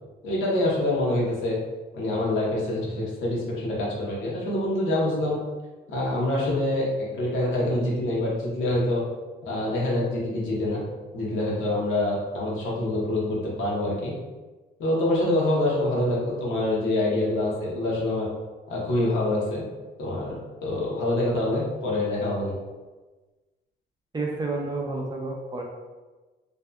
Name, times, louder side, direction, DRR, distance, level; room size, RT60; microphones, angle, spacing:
voice 1, 0.2-1.6 1.9-5.4 5.9-9.0 9.4-10.8 11.1-14.1 14.8-18.3 18.7-19.6 20.0-22.5, left 1 dB, 80° left, -5 dB, 0.9 m, -26 dB
voice 2, 24.1-25.6, right 3 dB, 20° right, -1 dB, 0.4 m, -30 dB
2.6 x 2.3 x 2.2 m, 1.2 s
cardioid pair, 90°, 20 cm